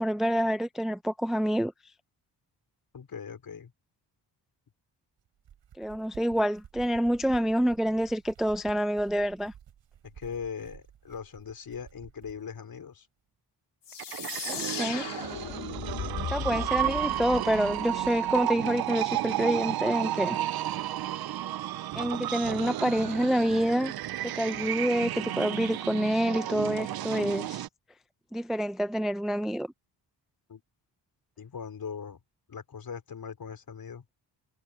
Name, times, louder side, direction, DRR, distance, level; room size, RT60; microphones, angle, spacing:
voice 1, 0.0-1.7 5.8-9.5 14.5-15.1 16.3-20.4 21.9-23.9 24.2-27.7 28.3-29.7, equal, ahead, 0.5 m, -27 dB
voice 2, 2.9-3.7 10.1-13.1 30.5-30.6 31.4-32.2 32.5-34.0, left 6 dB, 55° left, 4.9 m, -40 dB
sound 1, 5.3-12.4, right 9 dB, 85° right, 3.4 m, -52 dB
sound 2, 13.9-18.4, left 8 dB, 70° left, 3.5 m, -37 dB
sound 3, 13.9-27.7, right 13 dB, 60° right, 0.5 m, -32 dB
wide cardioid pair, 125°, 43 cm